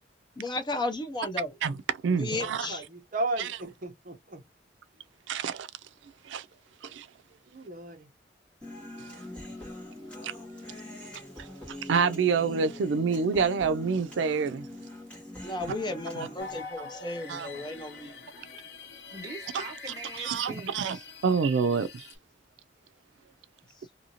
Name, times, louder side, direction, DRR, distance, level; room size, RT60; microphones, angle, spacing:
voice 1, 0.4-1.5 2.2-2.8 15.4-18.2, left 2 dB, 25° left, 0.7 m, -34 dB
voice 2, 1.6-2.7 3.4-3.6 5.3-5.7 6.2-6.5 6.8-7.1 9.0-9.1 10.2-10.3 11.4-14.7 16.2-16.3 17.3-17.6 19.5-19.6 20.2-21.0 21.2-22.1, right 5 dB, 90° right, 0.4 m, -28 dB
voice 3, 2.3-4.4 7.5-8.1, right 2 dB, 45° right, 0.8 m, -35 dB
Human voice, 8.6-16.6, left 1 dB, 5° left, 1.4 m, -43 dB
sound 1, 16.4-22.2, left 4 dB, 65° left, 0.9 m, -45 dB
voice 4, 18.3-21.1, right 2 dB, 20° right, 1.2 m, -44 dB
2.7 x 2.6 x 2.8 m
head